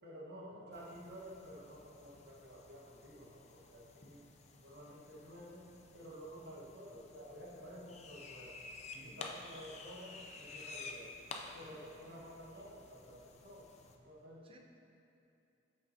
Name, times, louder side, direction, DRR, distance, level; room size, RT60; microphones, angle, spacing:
voice 1, 0.0-4.2 4.6-8.6 9.0-11.2 11.5-14.5, equal, 60° right, -4 dB, 1.2 m, -52 dB
voice 2, 0.5-0.6 8.9-9.2 11.6-11.8 14.4-14.6, right 2 dB, 30° right, 1 dB, 0.6 m, -59 dB
sound 1, 0.7-14.0, left 3 dB, 35° left, 0.4 m, -52 dB
8.6 x 5.6 x 2.7 m, 2.8 s
head